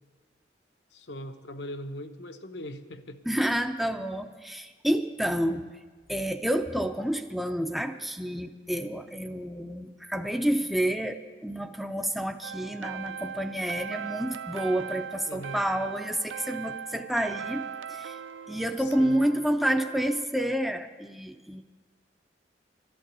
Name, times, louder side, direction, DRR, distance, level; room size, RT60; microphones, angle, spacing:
voice 1, 0.9-3.2 15.3-15.6 18.8-19.2, equal, 70° left, 7 dB, 1.0 m, -40 dB
voice 2, 3.3-5.7 6.1-18.2 18.5-21.6, equal, ahead, 6 dB, 0.5 m, -29 dB
sound 1, 12.4-20.3, right 7 dB, 85° right, 0.4 m, -39 dB
12.5 x 11.0 x 8.1 m, 1.3 s
head